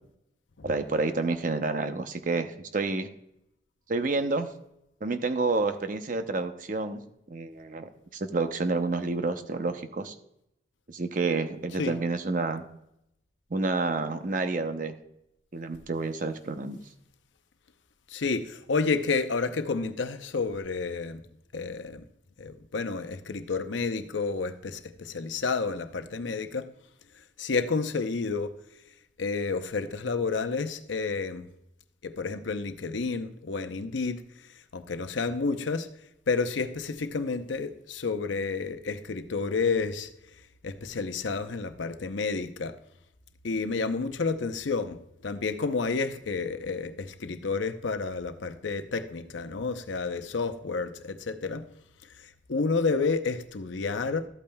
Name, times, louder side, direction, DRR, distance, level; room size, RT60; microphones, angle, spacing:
voice 1, 0.6-3.1 3.9-4.5 5.0-10.1 10.9-12.7 13.5-14.9 15.5-16.8, right 3 dB, 45° right, 0.7 m, -29 dB
voice 2, 18.1-21.2 21.5-22.1 22.4-26.7 27.4-28.5 29.2-31.5 32.0-34.2 34.7-35.9 36.3-40.1 40.6-42.7 43.4-51.6 52.2-54.3, left 4 dB, 85° left, 0.7 m, -30 dB
13.0 x 8.6 x 2.3 m
head